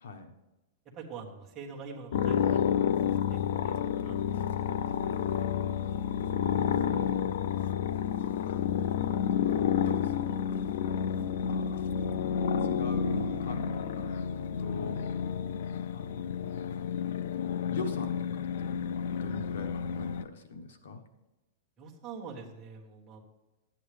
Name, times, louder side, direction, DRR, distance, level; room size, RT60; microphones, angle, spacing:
voice 1, 0.0-0.3 6.5-7.5 8.9-10.2 10.8-11.8 12.6-14.3 14.6-15.0 15.9-16.9 17.7-21.0, left 3 dB, 85° left, 6 dB, 1.3 m, -42 dB
voice 2, 0.9-4.4 4.9-5.5 6.0-6.3 21.8-23.2, right 5 dB, 15° right, -3 dB, 1.5 m, -46 dB
sound 1, 2.1-20.2, left 8 dB, 60° left, 0.4 m, -30 dB
11.5 x 8.8 x 3.4 m, 1.0 s
supercardioid pair, 175°, 0 cm